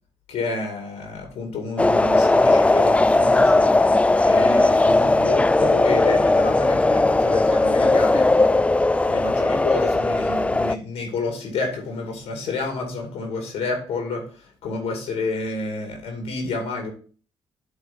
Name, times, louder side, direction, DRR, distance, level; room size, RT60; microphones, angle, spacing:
voice 1, 0.3-3.7 4.2-8.3 9.0-16.9, left 3 dB, 85° left, 3 dB, 2.4 m, -29 dB
sound 1, 1.8-10.8, left 2 dB, 10° left, 0.3 m, -18 dB
9.3 x 3.7 x 5.3 m, 0.42 s
cardioid pair, 75°, 10 cm